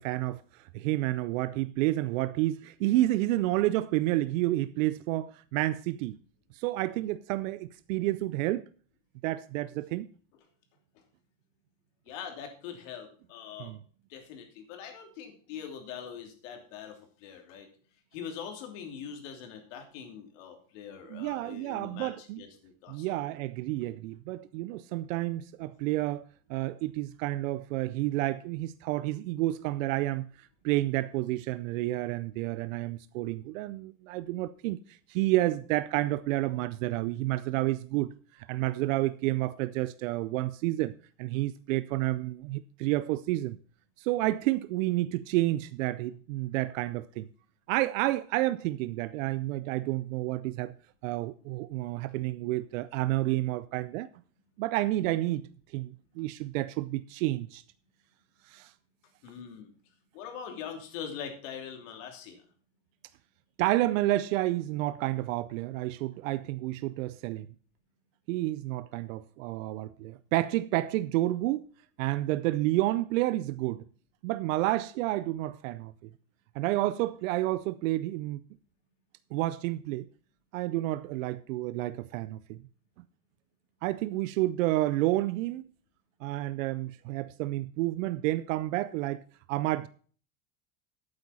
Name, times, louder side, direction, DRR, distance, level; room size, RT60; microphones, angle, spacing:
voice 1, 0.0-6.2 6.5-8.6 9.2-10.1 13.6-13.8 21.1-22.4 22.9-26.2 26.5-43.6 44.0-47.3 47.7-50.7 51.0-54.1 54.6-55.4 55.7-57.6 58.5-58.7 63.6-67.5 68.3-71.7 72.0-73.8 74.2-76.1 76.5-78.4 79.3-80.1 80.5-82.6 83.8-85.7 86.2-89.2 89.5-89.9, right 17 dB, 80° right, 0.6 m, -30 dB
voice 2, 12.1-13.7 14.1-17.7 18.1-23.1 59.2-59.7 60.1-62.4, left 7 dB, 70° left, 3.0 m, -43 dB
8.9 x 7.9 x 5.6 m
supercardioid pair, 140°, 39 cm